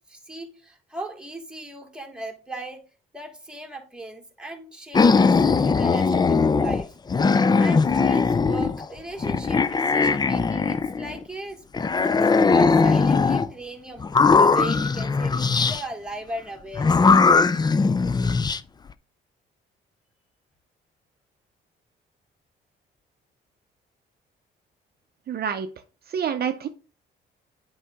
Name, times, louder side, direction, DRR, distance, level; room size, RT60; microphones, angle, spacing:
voice 1, 0.1-2.8 3.1-5.4 5.6-6.9 7.5-11.6 11.9-16.9, right 1 dB, 5° right, 1.6 m, -38 dB
sound 1, 4.9-6.8 7.1-8.8 9.2-11.2 11.7-13.5 14.0-15.8 16.8-18.6, left 4 dB, 20° left, 0.4 m, -19 dB
voice 2, 25.3-25.7 26.1-26.7, right 8 dB, 50° right, 0.6 m, -27 dB
8.4 x 4.8 x 3.5 m
cardioid pair, 90°, 20 cm